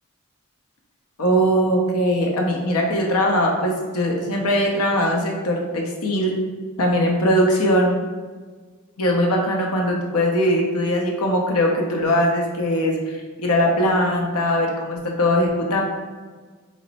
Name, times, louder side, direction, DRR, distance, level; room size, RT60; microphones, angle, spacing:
voice 1, 1.2-6.4 6.8-7.9 9.0-15.8, equal, 85° left, 0 dB, 0.6 m, -20 dB
3.0 x 2.1 x 4.0 m, 1.4 s
head